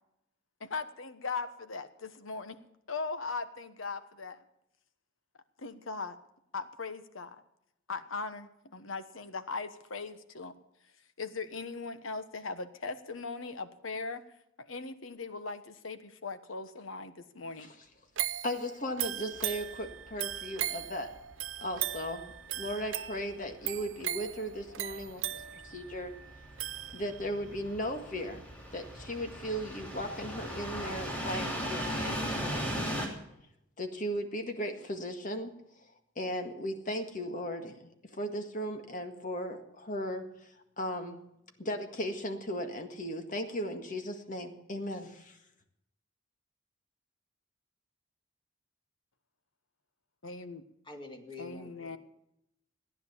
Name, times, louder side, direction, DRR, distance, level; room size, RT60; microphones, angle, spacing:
voice 1, 0.6-2.6 2.9-4.4 5.6-6.2 6.5-7.4 7.9-10.5 11.2-14.2 14.6-17.7 50.2-50.6 51.4-52.0, left 4 dB, 90° left, 11 dB, 1.2 m, -39 dB
voice 2, 18.2-21.1 21.6-26.1 26.9-28.4 28.7-33.0 33.8-41.2 41.6-45.4, equal, 40° left, 5 dB, 1.8 m, -37 dB
sound 1, 18.2-27.4 27.9-28.0, right 13 dB, 80° right, 0.6 m, -38 dB
sound 2, 19.4-33.1, equal, 5° left, 3.1 m, -39 dB
voice 3, 50.8-52.0, left 3 dB, 25° left, 3 dB, 2.3 m, -46 dB
15.5 x 10.5 x 7.2 m, 0.79 s
head